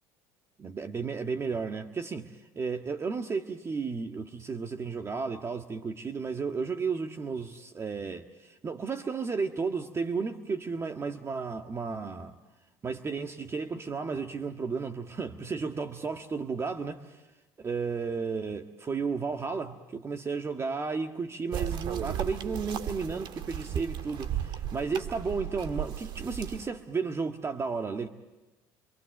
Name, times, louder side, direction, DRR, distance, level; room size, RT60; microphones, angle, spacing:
voice 1, 0.6-12.3 12.8-17.2 17.6-28.1, right 5 dB, 30° right, 1.6 m, -33 dB
sound 1, 21.5-26.7, right 10 dB, 60° right, 2.0 m, -35 dB
27.0 x 26.5 x 7.9 m
supercardioid pair, 80°, 9 cm